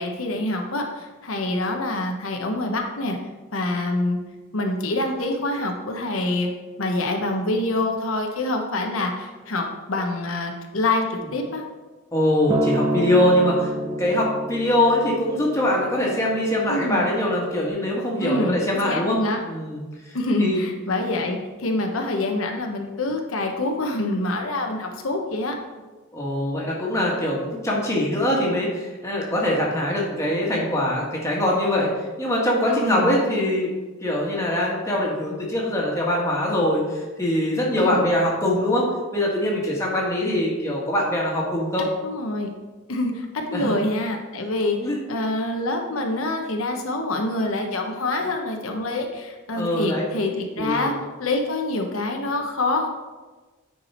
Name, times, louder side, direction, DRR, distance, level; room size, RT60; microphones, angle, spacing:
voice 1, 0.0-3.2 3.5-4.2 4.5-6.5 6.8-11.6 16.7-17.0 18.2-19.4 20.1-25.6 32.7-33.2 37.8-38.1 42.0-42.5 42.9-44.8 45.1-50.9 51.2-52.9, left 2 dB, 85° left, 2 dB, 1.0 m, -26 dB
voice 2, 12.1-19.2 19.5-19.8 20.4-20.6 26.1-33.7 34.0-41.8 43.5-43.8 44.8-45.0 49.5-50.0 50.6-50.9, left 1 dB, 15° left, -4 dB, 1.6 m, -23 dB
Acoustic guitar, 12.5-16.8 17.6-17.7, right 1 dB, 15° right, 0.5 m, -29 dB
9.3 x 4.8 x 4.3 m, 1.2 s
head